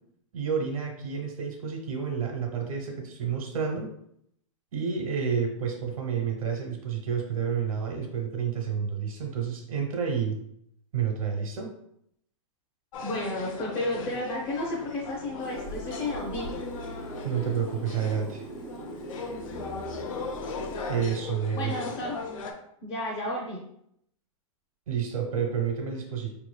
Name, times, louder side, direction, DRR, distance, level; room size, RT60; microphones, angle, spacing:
voice 1, 0.3-3.9 4.7-10.4 10.9-11.7 17.2-18.4 20.9-21.7 24.9-26.3, right 7 dB, 90° right, 2 dB, 1.1 m, -30 dB
sound 1, 12.9-22.5, left 3 dB, 75° left, 0.7 m, -38 dB
voice 2, 13.0-16.6 21.5-22.3 22.8-23.6, left 1 dB, 30° left, -3 dB, 0.7 m, -32 dB
sound 2, 15.4-21.0, right 2 dB, 20° right, 0.5 m, -42 dB
4.5 x 3.0 x 2.3 m, 0.73 s
supercardioid pair, 155°, 17 cm